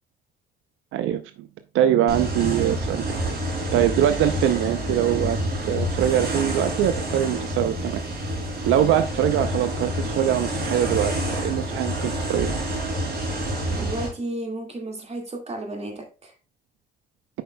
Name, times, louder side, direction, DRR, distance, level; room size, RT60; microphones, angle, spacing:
voice 1, 0.9-1.5 1.7-3.2 3.7-5.4 5.7-8.0 8.6-12.6, right 10 dB, 85° right, 0.5 m, -23 dB
sound 1, 2.1-14.1, right 1 dB, 55° right, 3.5 m, -28 dB
voice 2, 13.7-16.3, right 1 dB, 30° right, 2.0 m, -33 dB
8.5 x 5.4 x 2.2 m
cardioid pair, 90°, 20 cm